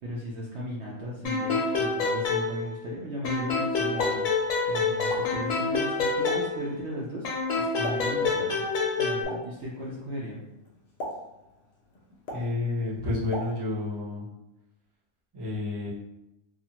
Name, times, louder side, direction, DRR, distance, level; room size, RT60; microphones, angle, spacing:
voice 1, 0.0-8.6 9.0-10.4, equal, 65° right, -5 dB, 0.7 m, -36 dB
sound 1, 1.2-2.9 3.2-6.9 7.2-9.2, left 4 dB, 80° left, 1.0 m, -27 dB
Explosion, 3.7-14.0, equal, 60° left, 0.7 m, -42 dB
voice 2, 12.3-14.3 15.3-15.9, left 2 dB, 25° right, -8 dB, 0.6 m, -30 dB
2.5 x 2.4 x 2.8 m, 0.92 s
omnidirectional pair, 1.5 m